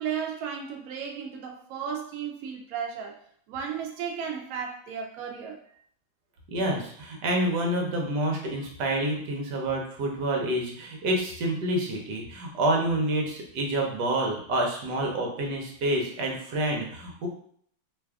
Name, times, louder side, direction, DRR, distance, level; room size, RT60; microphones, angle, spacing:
voice 1, 0.0-3.2 3.5-5.6, right 7 dB, 90° right, 2 dB, 0.7 m, -34 dB
voice 2, 6.5-17.3, right 1 dB, 65° right, 1 dB, 1.2 m, -28 dB
3.3 x 2.3 x 3.4 m, 0.62 s
omnidirectional pair, 2.2 m